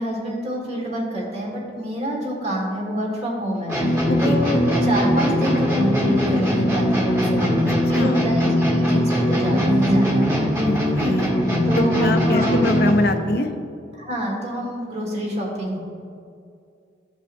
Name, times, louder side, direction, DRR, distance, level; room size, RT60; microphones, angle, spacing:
voice 1, 0.0-10.5 11.7-12.8 13.9-15.8, equal, 35° right, -2 dB, 1.8 m, -27 dB
sound 1, 3.7-13.1, equal, 15° right, 1.9 m, -20 dB
voice 2, 4.1-4.4 7.9-8.2 10.6-11.3 11.8-13.5, left 1 dB, 55° left, 6 dB, 0.7 m, -23 dB
14.5 x 5.1 x 2.6 m, 2.4 s
head